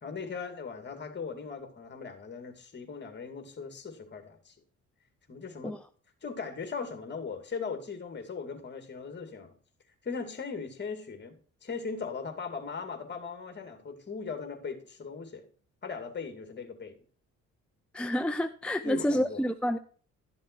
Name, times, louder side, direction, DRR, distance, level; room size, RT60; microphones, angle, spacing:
voice 1, 0.0-4.6 5.3-5.7 6.2-9.6 10.0-15.5 15.8-17.0 18.8-19.4, left 5 dB, 35° left, 2.3 m, -39 dB
voice 2, 17.9-19.8, equal, 5° left, 0.5 m, -29 dB
12.5 x 7.2 x 4.5 m
cardioid pair, 90°, 30 cm